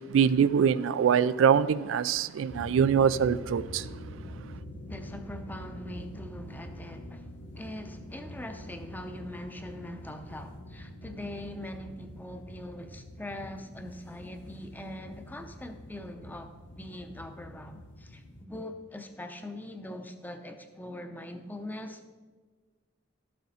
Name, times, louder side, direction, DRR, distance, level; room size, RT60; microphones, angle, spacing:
voice 1, 0.1-3.9, right 7 dB, 80° right, 0.3 m, -24 dB
sound 1, 2.5-18.4, equal, 65° left, 1.2 m, -45 dB
voice 2, 4.9-22.1, left 1 dB, 10° left, 0.6 m, -42 dB
12.5 x 7.5 x 4.2 m
head